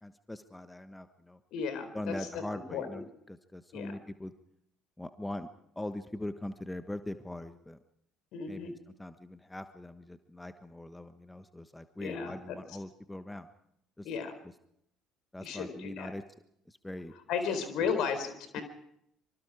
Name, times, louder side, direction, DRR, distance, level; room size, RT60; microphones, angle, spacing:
voice 1, 0.0-1.4 1.9-4.3 5.0-5.5 5.7-7.8 8.5-8.7 9.0-13.5 14.0-14.1 15.3-16.2 16.7-17.1 17.8-17.9, left 1 dB, 10° left, 10 dB, 1.4 m, -41 dB
voice 2, 1.5-2.4 2.7-3.0 3.7-4.0 8.3-8.7 12.0-12.6 14.0-14.3 15.4-16.1 17.3-18.6, left 6 dB, 55° left, 9 dB, 4.1 m, -34 dB
25.5 x 24.5 x 5.0 m, 0.75 s
figure-of-eight pair, 55°, 0 cm